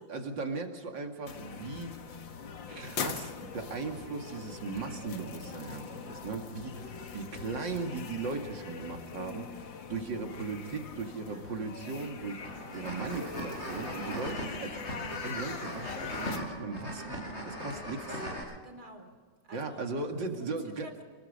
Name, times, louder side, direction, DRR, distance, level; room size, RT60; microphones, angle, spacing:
voice 1, 0.1-2.2 2.7-18.2 19.5-20.9, right 4 dB, 75° right, 4 dB, 2.9 m, -38 dB
sound 1, 1.3-16.4, left 6 dB, 85° left, 2.2 m, -42 dB
sound 2, 12.4-18.4, equal, 35° left, 8.5 m, -39 dB
voice 2, 18.1-19.1 19.5-21.0, right 1 dB, 55° right, 5 dB, 3.9 m, -50 dB
28.5 x 21.0 x 5.5 m, 1.5 s
omnidirectional pair, 2.0 m